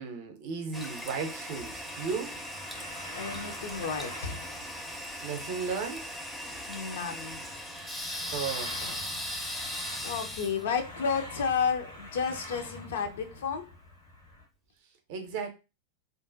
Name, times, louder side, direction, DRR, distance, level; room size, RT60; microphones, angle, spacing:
voice 1, 0.0-2.4 5.2-6.1 8.3-9.0 15.1-15.5, right 5 dB, 50° right, 0.5 m, -35 dB
Toilet flush, 0.7-13.4, equal, 5° left, 0.5 m, -39 dB
sound 1, 1.7-14.4, left 1 dB, 75° left, 1.1 m, -47 dB
voice 2, 3.2-4.4 6.7-7.4 10.0-13.7, left 6 dB, 60° left, 0.4 m, -32 dB
2.5 x 2.1 x 2.5 m
figure-of-eight pair, 90°, 0 cm